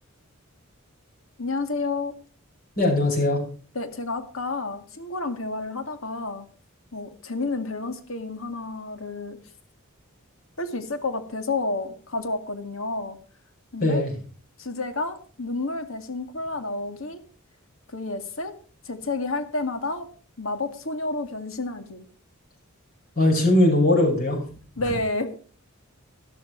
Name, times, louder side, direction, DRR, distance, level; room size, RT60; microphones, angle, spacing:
voice 1, 1.4-2.1 3.7-6.4 6.9-9.4 10.6-13.2 13.7-14.0 14.6-17.2 17.9-18.5 18.8-20.1 20.4-22.1 24.8-25.4, left 3 dB, 70° left, 8 dB, 2.1 m, -30 dB
voice 2, 2.8-3.4 13.8-14.1 23.2-24.4, left 1 dB, 50° left, -1 dB, 5.5 m, -20 dB
12.5 x 12.5 x 4.5 m, 0.40 s
head